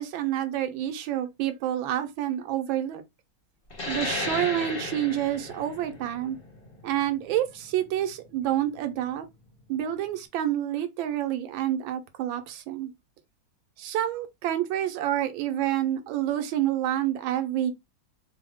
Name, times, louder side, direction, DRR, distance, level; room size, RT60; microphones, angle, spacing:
voice 1, 0.0-3.0 3.8-6.4 6.8-9.3 9.7-12.9 13.8-17.7, right 12 dB, 90° right, 1.4 m, -28 dB
sound 1, 3.7-8.9, left 2 dB, 35° left, 1.0 m, -35 dB
3.8 x 2.0 x 3.5 m
omnidirectional pair, 2.1 m